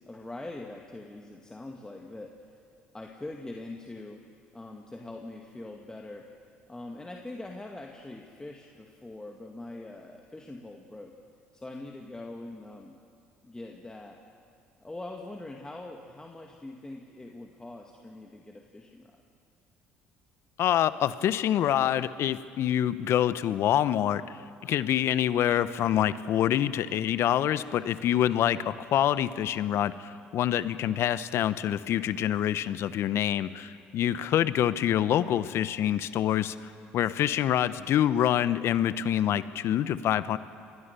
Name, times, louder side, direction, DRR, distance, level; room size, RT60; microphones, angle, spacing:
voice 1, 0.1-2.3 2.9-4.2 4.5-6.3 6.7-11.1 11.5-13.0 13.4-14.2 14.8-19.2 34.2-34.4, left 2 dB, 15° left, 1 dB, 2.2 m, -43 dB
voice 2, 20.6-24.2 24.6-36.6 36.9-40.4, left 11 dB, 60° left, 15 dB, 0.9 m, -26 dB
26.0 x 20.5 x 6.9 m, 2.3 s
hypercardioid pair, 65°, 5 cm